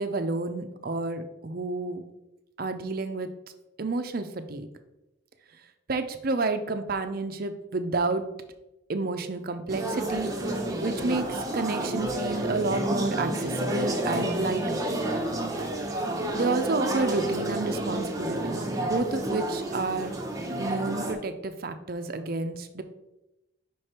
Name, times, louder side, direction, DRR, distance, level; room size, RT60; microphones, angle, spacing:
voice 1, 0.0-2.0 2.6-3.3 3.8-4.7 5.9-8.2 8.9-10.3 10.8-14.8 16.3-20.2 20.6-22.8, right 3 dB, 50° right, 8 dB, 0.5 m, -30 dB
sound 1, 9.7-21.1, right 1 dB, 15° right, 0.8 m, -30 dB
5.4 x 5.1 x 4.3 m, 0.92 s
head